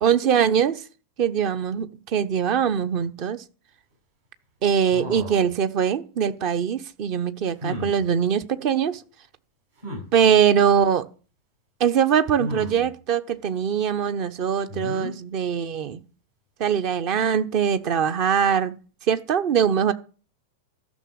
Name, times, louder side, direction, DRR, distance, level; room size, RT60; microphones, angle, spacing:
voice 1, 0.0-0.8 1.2-3.4 4.6-9.0 10.1-11.0 11.8-16.0 16.6-18.8 19.1-19.9, right 8 dB, 40° right, 0.9 m, -22 dB
sound 1, 4.9-5.5 7.6-8.0 9.8-10.1 12.4-12.9 14.7-15.1, left 1 dB, 65° right, 7.9 m, -33 dB
13.0 x 6.3 x 7.5 m
figure-of-eight pair, 90°, 0 cm